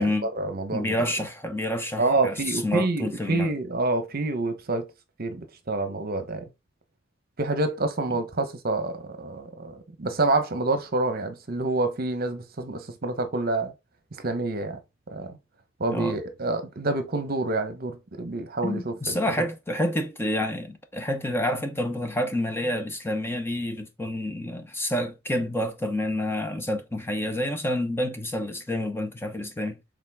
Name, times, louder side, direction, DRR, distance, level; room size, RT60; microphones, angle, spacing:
voice 1, 0.0-1.0 2.0-4.9 5.2-6.5 7.4-13.7 14.2-14.8 15.1-15.4 15.8-19.5, right 2 dB, 50° right, 1.0 m, -27 dB
voice 2, 0.7-3.5 15.9-16.1 18.6-29.8, left 1 dB, 10° left, 0.9 m, -28 dB
7.3 x 3.8 x 3.5 m
head